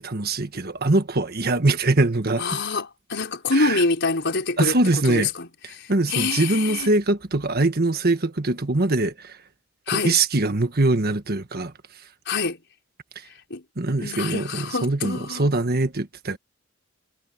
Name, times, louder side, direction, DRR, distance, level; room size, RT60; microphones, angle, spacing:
voice 1, 0.0-2.6 3.5-3.8 4.6-5.3 5.9-9.4 9.9-11.7 13.8-16.4, right 2 dB, 50° right, 1.5 m, -22 dB
voice 2, 2.4-5.5 5.7-6.9 9.9-10.1 12.3-12.6 13.5-13.6 14.0-15.5, left 3 dB, 60° left, 4.9 m, -26 dB
head